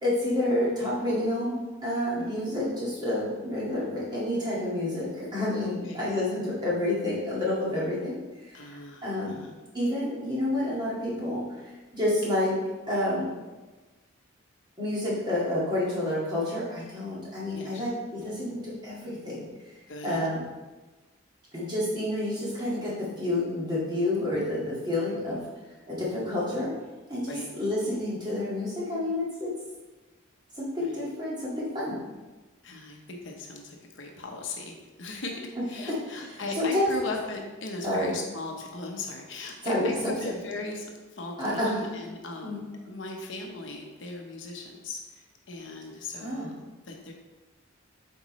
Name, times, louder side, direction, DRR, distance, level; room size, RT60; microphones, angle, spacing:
voice 1, 0.0-8.7 9.0-9.4 9.7-12.6 12.9-13.3 14.8-19.4 20.0-20.5 21.5-25.4 25.9-26.7 27.1-29.5 30.6-31.9 35.9-36.2 36.6-36.9 37.8-38.1 39.6-40.1 41.4-41.7 42.4-42.6 46.2-46.5, left 1 dB, 20° right, -7 dB, 1.9 m, -29 dB
voice 2, 8.5-9.6 17.5-17.8 19.9-20.2 25.1-25.4 27.3-27.4 30.8-31.0 32.6-42.6 42.9-46.5 46.9-47.1, left 2 dB, 60° left, 2 dB, 0.8 m, -38 dB
7.9 x 4.5 x 3.1 m, 1.2 s
head